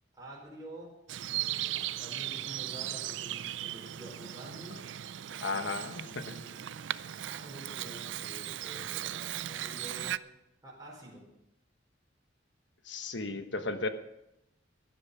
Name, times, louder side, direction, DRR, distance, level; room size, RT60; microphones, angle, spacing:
voice 1, 0.1-0.9 1.3-4.8 5.4-6.7 7.2-10.2 10.6-11.2, right 1 dB, 20° right, -4 dB, 5.0 m, -49 dB
Bird vocalization bird call bird song, 1.1-10.2, right 12 dB, 70° right, 0.4 m, -37 dB
voice 2, 5.4-6.4 12.8-13.9, left 3 dB, 70° left, 8 dB, 1.3 m, -35 dB
15.5 x 11.0 x 5.7 m, 0.85 s
head